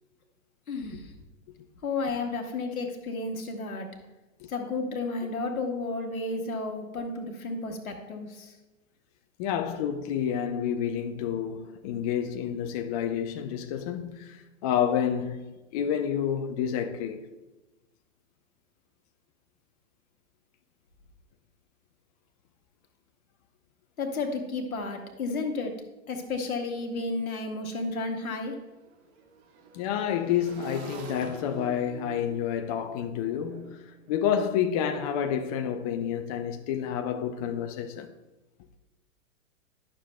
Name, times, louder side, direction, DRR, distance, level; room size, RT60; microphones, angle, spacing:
voice 1, 0.7-1.1 1.8-3.9 4.5-8.5 24.0-25.7 26.1-28.6, left 3 dB, 85° left, 1.4 m, -32 dB
voice 2, 9.4-17.3 29.7-38.1, left 9 dB, 30° left, 0.4 m, -29 dB
Motorcycle / Engine, 26.7-26.8 27.1-34.2, right 6 dB, 50° right, 1.2 m, -46 dB
11.0 x 6.3 x 2.2 m
hypercardioid pair, 115°, 41 cm